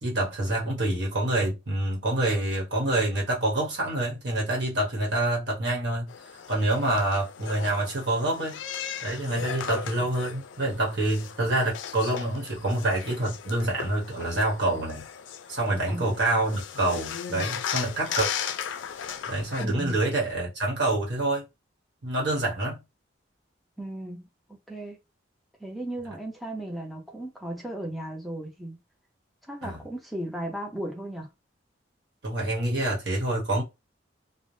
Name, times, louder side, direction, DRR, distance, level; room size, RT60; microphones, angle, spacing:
voice 1, 0.0-6.1 6.5-8.6 9.0-15.1 15.5-18.3 19.3-21.4 22.0-22.8 29.6-29.8 32.2-33.6, right 1 dB, 60° right, 1.0 m, -27 dB
sound 1, 6.1-19.7, left 8 dB, 75° left, 0.4 m, -37 dB
voice 2, 19.6-20.0 23.8-24.2 24.7-25.0 25.6-28.8 29.5-31.3, right 1 dB, ahead, 0.5 m, -35 dB
3.1 x 2.0 x 2.6 m
head